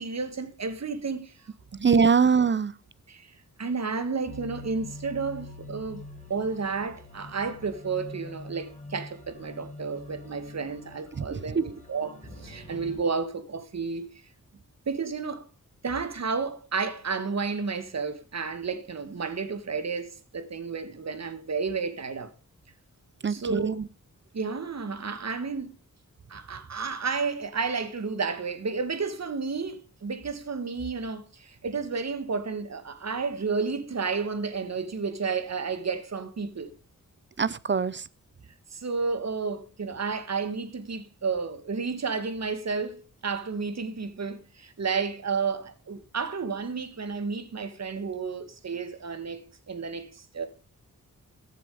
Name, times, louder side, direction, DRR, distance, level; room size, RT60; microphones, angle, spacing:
voice 1, 0.0-1.3 1.7-2.0 3.1-3.3 3.6-6.0 6.3-14.1 14.9-15.5 15.8-22.3 23.3-23.8 24.3-25.7 26.3-36.7 38.7-50.5, right 5 dB, 50° right, 1.7 m, -31 dB
voice 2, 1.8-2.7 11.2-11.6 23.2-23.9 37.4-38.1, right 6 dB, 35° right, 0.6 m, -23 dB
sound 1, 4.3-13.0, left 1 dB, 25° left, 5.8 m, -44 dB
14.5 x 7.5 x 4.9 m
wide cardioid pair, 130°, 33 cm